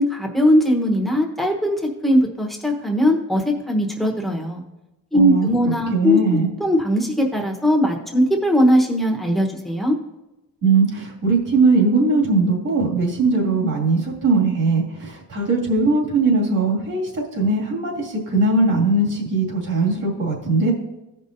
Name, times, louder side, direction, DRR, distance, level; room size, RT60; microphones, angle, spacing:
voice 1, 0.0-4.6 5.1-6.2 6.6-10.0, equal, ahead, 1 dB, 1.1 m, -19 dB
voice 2, 5.1-6.5 10.6-20.7, right 3 dB, 65° right, -3 dB, 2.3 m, -20 dB
15.5 x 5.4 x 2.7 m, 0.96 s
wide cardioid pair, 160°, 34 cm